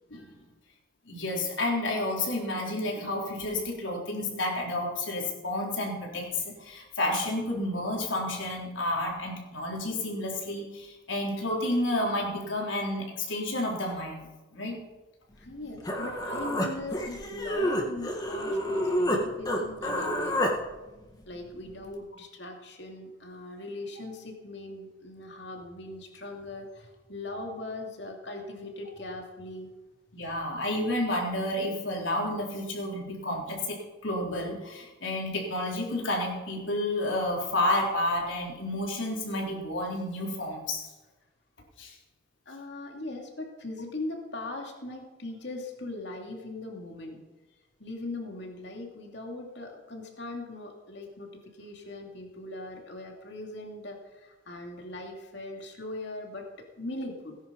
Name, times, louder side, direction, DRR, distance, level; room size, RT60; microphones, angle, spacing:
voice 1, 1.1-14.2 14.5-14.8 27.3-27.4 30.1-40.8 41.8-41.9, left 1 dB, 80° left, -1 dB, 4.1 m, -30 dB
voice 2, 15.4-20.5 21.3-29.7 42.5-47.2 47.8-57.4, left 2 dB, 65° left, 2 dB, 2.6 m, -40 dB
Human voice, 15.5-15.6 15.8-19.2 19.5-20.5, equal, 20° left, 1.8 m, -29 dB
18.0 x 10.0 x 5.3 m, 1.1 s
head